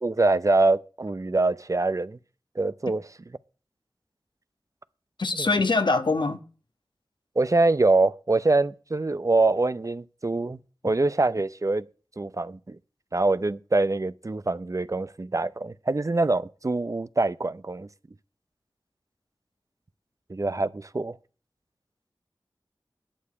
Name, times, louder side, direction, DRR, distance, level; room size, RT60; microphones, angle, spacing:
voice 1, 0.0-2.2 2.6-3.0 5.4-5.5 7.4-10.6 10.8-11.9 12.2-12.8 13.1-17.9 20.3-21.2, right 2 dB, 40° right, 0.6 m, -24 dB
voice 2, 5.2-6.4, left 3 dB, 70° left, 1.4 m, -23 dB
11.5 x 4.9 x 8.3 m
wide cardioid pair, 45°, 8 cm